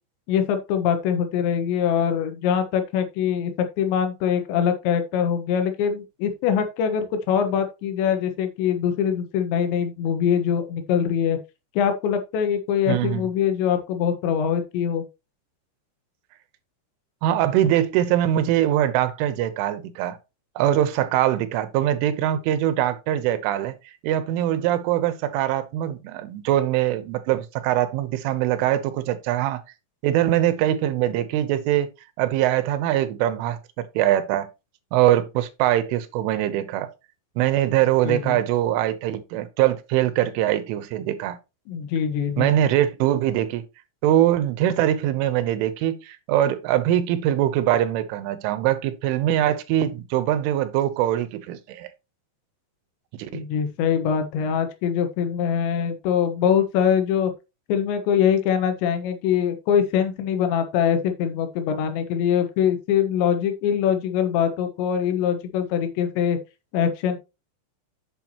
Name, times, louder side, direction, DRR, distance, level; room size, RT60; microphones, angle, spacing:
voice 1, 0.3-3.5 3.8-11.4 11.8-15.1 38.0-38.4 41.7-42.5 53.3-57.3 57.7-66.4 66.7-67.2, left 8 dB, 75° left, 3.6 m, -23 dB
voice 2, 12.9-13.3 17.2-20.2 20.6-23.8 24.0-29.6 30.0-31.9 32.2-33.6 34.0-34.5 34.9-36.9 37.4-41.4 42.4-43.6 44.0-51.9 53.2-53.4, right 12 dB, 90° right, 3.5 m, -22 dB
9.1 x 8.0 x 2.9 m
omnidirectional pair, 5.5 m